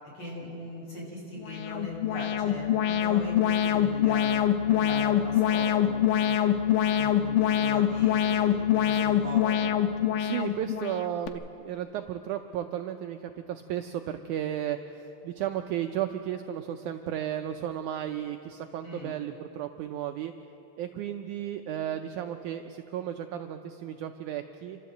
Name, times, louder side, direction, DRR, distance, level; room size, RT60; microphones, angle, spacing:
voice 1, 0.1-6.0 6.3-6.6 7.0-9.6 18.8-19.1, left 1 dB, 35° left, -4 dB, 6.4 m, -40 dB
Alarm, 1.4-11.3, left 10 dB, 80° left, 2.3 m, -25 dB
voice 2, 10.2-20.3 20.8-24.8, right 11 dB, 85° right, 7 dB, 1.7 m, -34 dB
28.5 x 13.0 x 7.8 m, 2.9 s
omnidirectional pair, 4.2 m